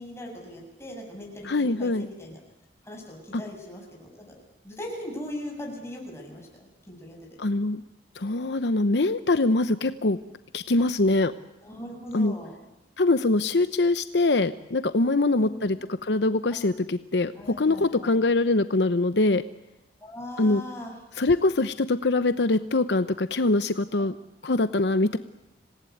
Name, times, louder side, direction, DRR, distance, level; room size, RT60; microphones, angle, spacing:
voice 1, 0.0-2.4 2.8-4.3 4.6-7.3 11.6-12.5 15.0-15.8 16.5-16.6 17.4-18.2 20.0-21.0, left 1 dB, 15° left, 0 dB, 7.2 m, -39 dB
voice 2, 1.4-2.1 3.3-3.4 7.4-7.8 8.2-10.2 10.5-11.3 12.1-12.4 13.0-17.3 17.6-19.4 20.4-20.6 21.2-24.1 24.4-25.2, left 2 dB, 70° left, 12 dB, 0.8 m, -23 dB
26.5 x 18.5 x 9.4 m, 0.93 s
head